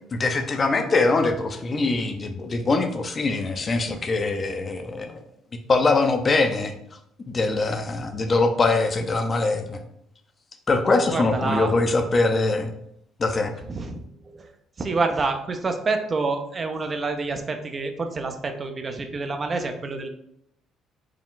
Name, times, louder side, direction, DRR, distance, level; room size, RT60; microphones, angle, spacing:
voice 1, 0.1-5.1 5.7-6.7 7.2-9.8 10.7-12.7 13.2-13.5, left 3 dB, 35° left, 6 dB, 0.5 m, -22 dB
voice 2, 11.1-11.7 13.7-14.5 14.8-20.1, right 3 dB, 35° right, 5 dB, 0.6 m, -28 dB
4.6 x 2.3 x 3.8 m, 0.74 s
cardioid pair, 95°, 0 cm